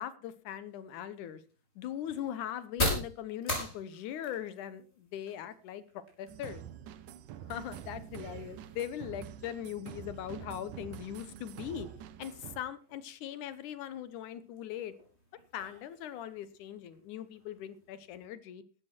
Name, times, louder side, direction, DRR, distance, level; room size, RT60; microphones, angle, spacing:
voice 1, 0.0-1.4 1.8-6.6 7.5-11.9 12.2-14.9 15.5-18.6, left 10 dB, 80° left, 14 dB, 2.4 m, -40 dB
sound 1, 0.7-18.3, left 1 dB, 20° left, 5.8 m, -43 dB
sound 2, 6.3-12.6, right 10 dB, 80° right, 2.5 m, -46 dB
16.5 x 12.5 x 4.4 m, 0.37 s
omnidirectional pair, 3.6 m